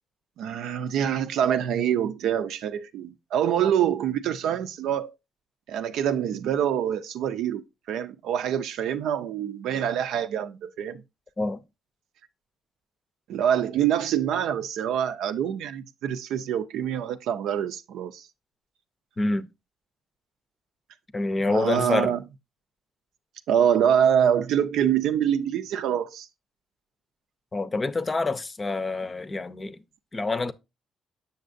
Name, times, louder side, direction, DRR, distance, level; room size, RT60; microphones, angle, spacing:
voice 1, 0.4-5.1 5.7-11.0 13.3-18.3 21.5-22.2 23.5-26.3, right 9 dB, 85° right, 0.5 m, -25 dB
voice 2, 19.2-19.5 21.1-22.1 27.5-29.8 30.1-30.5, left 3 dB, 25° left, 0.6 m, -27 dB
7.1 x 6.6 x 2.5 m
cardioid pair, 90°, 0 cm